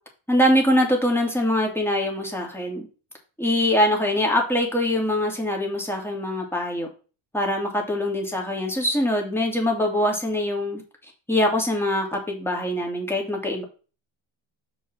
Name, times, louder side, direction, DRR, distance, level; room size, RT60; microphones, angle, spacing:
voice 1, 0.3-2.9 3.4-6.9 7.3-10.8 11.3-13.6, left 1 dB, 5° left, 0 dB, 3.0 m, -23 dB
6.3 x 5.2 x 5.7 m, 0.34 s
cardioid pair, 105°, 49 cm